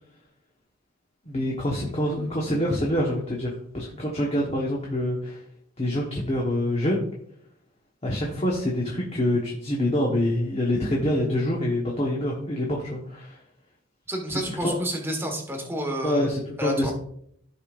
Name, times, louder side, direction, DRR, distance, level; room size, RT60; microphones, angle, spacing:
voice 1, 1.2-5.4 5.8-7.1 8.0-13.4 14.3-14.8 16.0-16.9, left 1 dB, 30° left, -2 dB, 1.2 m, -26 dB
voice 2, 14.1-16.3 16.6-16.9, equal, 10° right, 2 dB, 1.4 m, -29 dB
15.0 x 5.1 x 2.5 m, 0.70 s
head